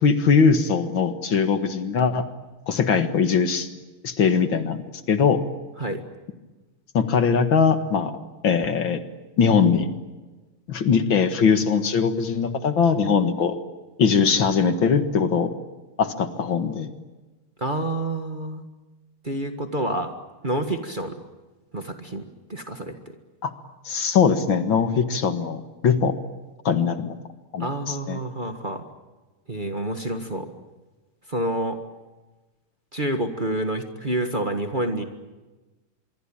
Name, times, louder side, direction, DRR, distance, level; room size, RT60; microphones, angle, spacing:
voice 1, 0.0-2.2 2.7-3.7 4.0-4.8 5.1-5.4 6.9-8.1 8.4-9.0 9.4-9.9 10.7-13.6 14.0-15.5 16.0-16.9 23.4-23.5 23.9-26.1 26.7-27.1 27.5-28.2, left 6 dB, 65° left, 9 dB, 2.3 m, -21 dB
voice 2, 17.6-18.6 19.2-20.1 20.4-21.2 21.7-22.2 22.5-23.1 27.6-28.8 29.5-30.5 31.3-31.8 32.9-35.0, right 1 dB, 25° right, 5 dB, 1.6 m, -28 dB
25.5 x 23.5 x 8.9 m, 1.2 s
omnidirectional pair, 2.4 m